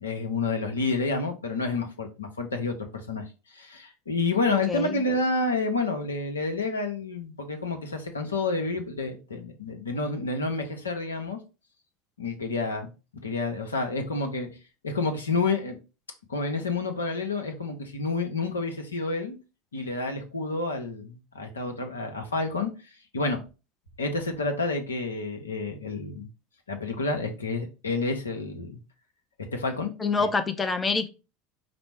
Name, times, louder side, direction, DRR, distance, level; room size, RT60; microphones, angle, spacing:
voice 1, 0.0-2.7 3.1-3.2 3.5-11.4 12.2-12.9 13.2-14.5 14.8-15.8 16.3-19.4 19.7-22.7 23.1-23.4 24.0-26.3 26.7-28.8 29.5-29.9 30.2-30.3, left 3 dB, 85° left, 0.8 m, -29 dB
voice 2, 4.5-4.9 30.0-31.1, left 4 dB, 20° left, 0.5 m, -26 dB
5.1 x 2.0 x 4.5 m
hypercardioid pair, 80°, 0 cm